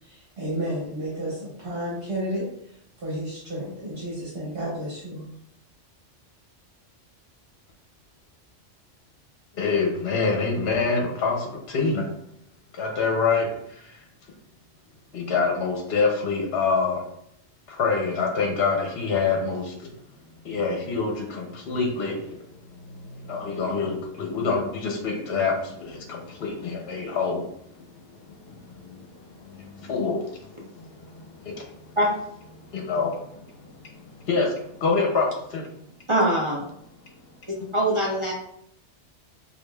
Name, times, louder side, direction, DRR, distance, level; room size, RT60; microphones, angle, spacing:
voice 1, 0.0-5.3, right 1 dB, 55° right, -6 dB, 1.2 m, -32 dB
voice 2, 9.5-12.1 12.7-14.0 15.1-17.0 17.7-19.9 20.4-32.0 32.5-35.6 37.6-37.7, left 4 dB, 60° left, 1 dB, 0.8 m, -27 dB
voice 3, 36.1-36.6 37.7-38.3, right 1 dB, 40° right, -4 dB, 0.5 m, -22 dB
5.0 x 2.4 x 2.2 m, 0.73 s
omnidirectional pair, 1.2 m